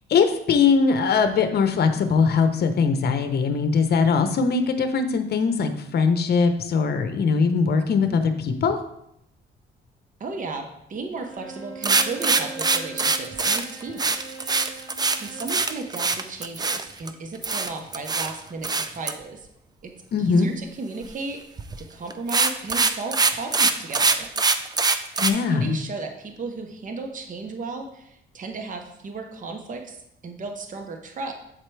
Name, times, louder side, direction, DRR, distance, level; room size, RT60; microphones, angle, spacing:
voice 1, 0.1-8.8 20.1-20.5 25.2-25.8, left 5 dB, 55° left, 8 dB, 0.7 m, -21 dB
voice 2, 10.2-14.2 15.2-19.5 19.8-19.9 20.2-21.4 21.9-24.3 25.2-31.3, right 3 dB, 40° right, 4 dB, 0.9 m, -35 dB
Bowed string instrument, 11.2-15.5, right 3 dB, 85° right, 1.9 m, -40 dB
sound 1, 11.8-17.1 17.4-18.3 18.6-19.1 21.6-21.8 22.1-25.3, right 4 dB, 20° right, 0.4 m, -22 dB
7.4 x 4.4 x 3.3 m, 0.77 s
cardioid pair, 90°, 20 cm